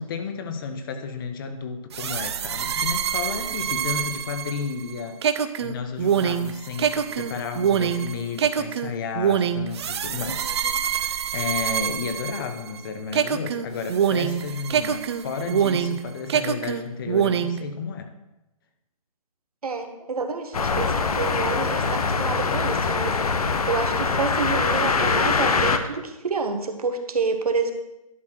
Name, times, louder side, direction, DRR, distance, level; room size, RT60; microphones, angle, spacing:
voice 1, 0.0-10.7 10.9-18.1, left 5 dB, 35° left, 7 dB, 1.0 m, -32 dB
sound 1, 1.9-12.8 13.1-16.0 16.3-17.6, right 8 dB, 50° right, 0.6 m, -25 dB
voice 2, 10.1-10.5 19.6-23.4 23.7-27.7, right 4 dB, 85° right, 6 dB, 1.4 m, -28 dB
sound 2, 20.5-25.8, left 4 dB, 85° left, 1.0 m, -23 dB
11.0 x 4.2 x 6.4 m, 0.93 s
hypercardioid pair, 155°, 19 cm